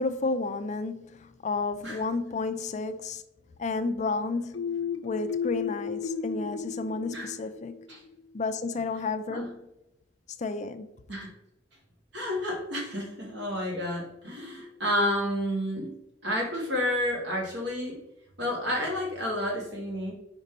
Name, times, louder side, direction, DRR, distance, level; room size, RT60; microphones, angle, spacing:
voice 1, 0.0-3.2 3.6-4.8 5.0-7.7 8.3-9.6 10.4-10.9, left 3 dB, 35° left, 0.4 m, -31 dB
sound 1, 4.5-8.2, left 6 dB, 80° left, 0.6 m, -34 dB
voice 2, 12.1-15.9 16.2-18.0 18.4-20.1, left 1 dB, 60° right, 2.3 m, -30 dB
5.3 x 4.1 x 5.2 m
head